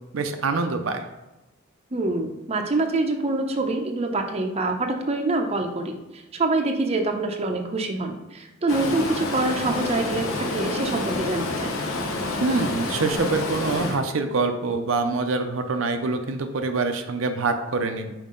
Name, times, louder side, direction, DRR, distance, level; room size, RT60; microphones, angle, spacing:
voice 1, 0.1-1.0 12.4-18.1, right 3 dB, 70° right, 6 dB, 0.5 m, -25 dB
voice 2, 1.9-11.8, right 2 dB, 30° right, 3 dB, 0.6 m, -25 dB
Stream, 8.7-14.0, left 2 dB, 80° left, 0.9 m, -28 dB
5.6 x 4.6 x 3.7 m, 1.0 s
head